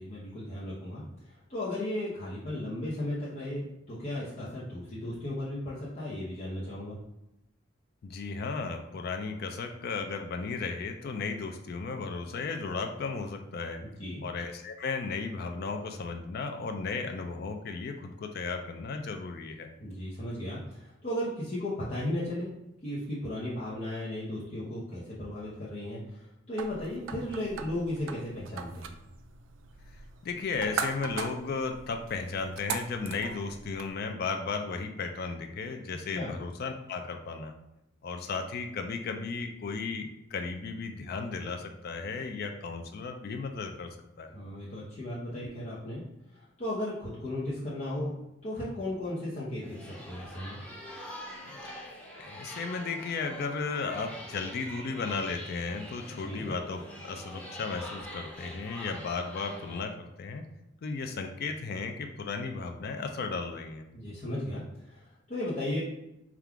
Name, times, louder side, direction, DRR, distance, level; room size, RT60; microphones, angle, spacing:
voice 1, 0.0-7.0 13.8-14.2 19.8-22.5 22.8-28.9 36.1-36.3 44.3-46.0 46.3-48.1 48.4-50.6 56.2-56.4 63.9-65.8, left 1 dB, 35° left, -9 dB, 0.8 m, -35 dB
voice 2, 8.0-13.8 14.2-19.7 29.9-30.0 30.2-37.5 38.0-43.9 44.2-44.3 51.6-51.7 52.2-60.4 60.8-63.8, left 4 dB, 50° left, 5 dB, 0.3 m, -35 dB
sound 1, 26.6-33.9, right 5 dB, 80° right, 0.4 m, -40 dB
sound 2, 49.6-59.8, equal, 5° left, 0.7 m, -44 dB
3.6 x 2.4 x 4.5 m, 0.88 s
head